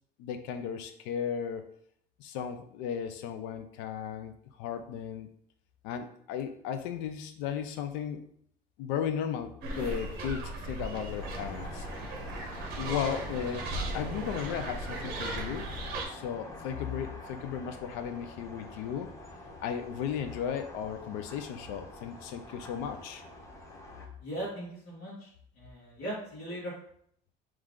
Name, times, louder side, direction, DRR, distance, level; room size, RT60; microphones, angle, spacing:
voice 1, 0.2-1.7 2.2-5.3 5.8-8.2 8.8-11.9 12.7-13.7 13.9-15.7 16.1-19.1 19.6-23.2, left 8 dB, 85° left, 8 dB, 0.6 m, -35 dB
sound 1, 9.6-16.1, right 2 dB, 55° right, 1.1 m, -37 dB
sound 2, 11.2-24.1, left 1 dB, 15° left, 0.6 m, -46 dB
voice 2, 24.2-25.3 25.6-26.7, right 1 dB, 55° left, -7 dB, 1.6 m, -38 dB
3.7 x 3.2 x 3.7 m, 0.65 s
cardioid pair, 160°, 19 cm